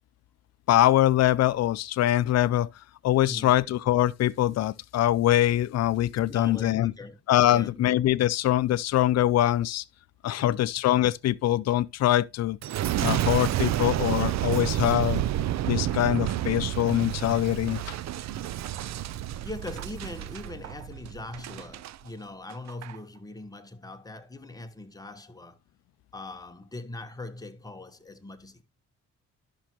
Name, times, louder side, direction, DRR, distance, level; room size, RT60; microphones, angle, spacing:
voice 1, 0.7-2.7 3.0-6.9 7.3-9.8 10.2-12.6 13.0-15.2 15.7-18.0, left 13 dB, 60° left, 0.5 m, -23 dB
voice 2, 6.3-7.2 7.5-7.9 10.4-10.7 19.4-25.6 26.1-28.6, left 2 dB, 10° left, 1.3 m, -41 dB
Boom, 12.6-22.0 22.5-23.0, right 13 dB, 60° right, 0.5 m, -30 dB
11.5 x 6.1 x 3.0 m
cardioid pair, 90°, 30 cm